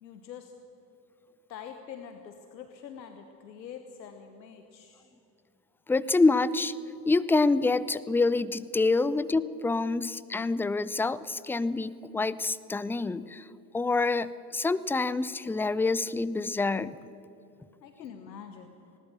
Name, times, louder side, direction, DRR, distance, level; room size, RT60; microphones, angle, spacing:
voice 1, 0.0-0.5 1.5-5.1 17.8-18.7, left 7 dB, 85° left, 6 dB, 1.2 m, -45 dB
voice 2, 5.9-6.7 7.1-13.5 13.7-17.0, left 3 dB, 5° left, 17 dB, 0.5 m, -26 dB
19.5 x 18.5 x 7.4 m, 2.8 s
figure-of-eight pair, 60°, 50 cm